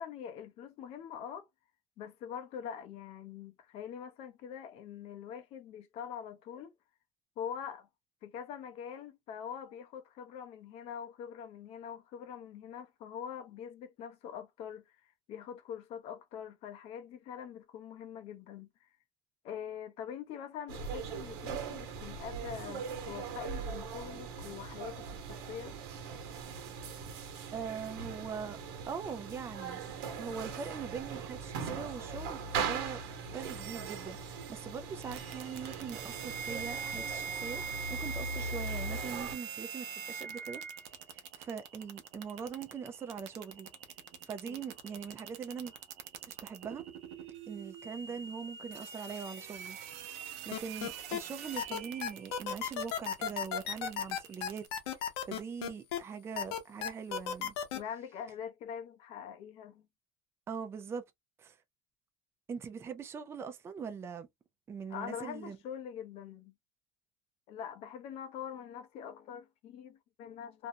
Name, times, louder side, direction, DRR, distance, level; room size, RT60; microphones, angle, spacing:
voice 1, 0.0-1.5 2.0-6.7 7.4-7.9 8.2-18.9 19.4-25.7 44.5-44.6 57.7-59.9 64.9-66.5 67.5-70.7, left 8 dB, 50° left, 0.6 m, -44 dB
sound 1, 20.7-39.4, right 5 dB, 80° right, 1.0 m, -40 dB
voice 2, 27.5-28.6 28.9-29.8 30.2-33.0 33.3-37.6 37.9-40.6 41.1-43.7 44.3-45.7 46.3-46.8 47.5-49.8 50.1-54.6 55.3-57.5 60.5-61.0 61.4-61.6 62.5-64.3 64.7-65.6, right 6 dB, 20° right, 0.4 m, -42 dB
sound 2, 35.0-54.7, right 6 dB, 55° right, 0.7 m, -44 dB
sound 3, 50.5-51.2 51.6-56.0 56.4-57.8, left 9 dB, 85° left, 0.7 m, -34 dB
2.6 x 2.1 x 2.7 m
supercardioid pair, 135°, 13 cm